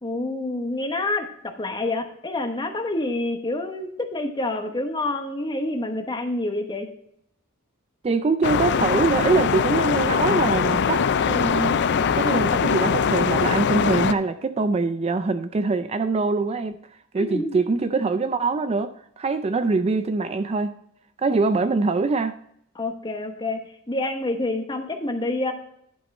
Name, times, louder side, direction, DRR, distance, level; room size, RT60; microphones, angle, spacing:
voice 1, 0.0-6.9 17.2-17.6 22.7-23.6 23.9-25.5, left 2 dB, 20° left, 1.0 m, -27 dB
voice 2, 8.0-11.7 12.2-16.8 17.1-20.8 21.2-22.4, right 3 dB, 30° right, 0.3 m, -23 dB
sound 1, 8.4-14.1, left 6 dB, 55° left, 0.4 m, -22 dB
11.0 x 5.5 x 4.2 m
head